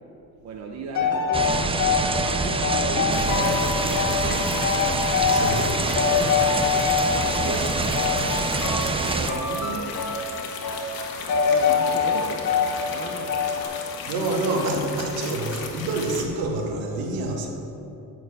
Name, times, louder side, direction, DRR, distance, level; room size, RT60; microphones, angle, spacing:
voice 1, 0.4-1.6 2.4-4.5 7.1-7.8 9.1-10.0 11.5-12.5 12.8-13.4, right 3 dB, 45° right, 1 dB, 1.0 m, -34 dB
sound 1, 0.9-2.2 2.6-3.7 3.9-5.7 5.9-7.5 7.9-9.0 9.3-10.3 10.6-10.9 11.3-12.9 13.3-13.6, left 6 dB, 50° left, 2.1 m, -24 dB
sound 2, 1.3-9.3, right 4 dB, 15° right, 0.5 m, -26 dB
sound 3, 3.1-16.2, left 5 dB, 80° left, 1.5 m, -36 dB
voice 2, 5.3-5.8 14.1-17.5, right 2 dB, 75° right, 2 dB, 1.8 m, -27 dB
8.9 x 6.0 x 8.1 m, 2.8 s
cardioid pair, 130°, 36 cm